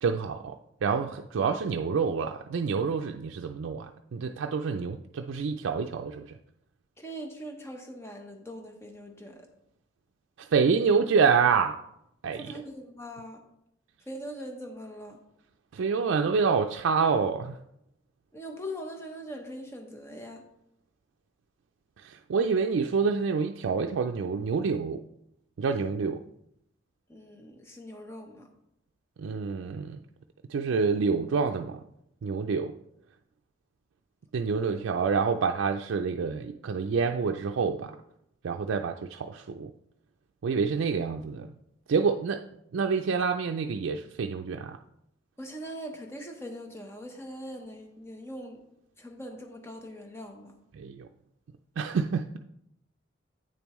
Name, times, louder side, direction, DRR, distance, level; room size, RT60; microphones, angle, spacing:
voice 1, 0.0-6.4 10.4-11.8 12.2-12.5 15.7-17.6 22.0-25.0 25.6-26.2 29.2-30.0 30.5-31.8 32.2-32.8 34.3-38.0 38.4-39.7 40.4-41.5 41.9-42.4 42.7-44.8 50.7-51.1 51.8-52.4, right 5 dB, 90° right, 4 dB, 0.4 m, -27 dB
voice 2, 7.0-9.5 12.3-13.4 14.1-15.2 18.3-20.4 27.1-28.5 34.6-34.8 45.4-48.6 49.0-50.6, equal, 15° left, 3 dB, 0.9 m, -41 dB
8.7 x 6.9 x 3.1 m, 0.79 s
head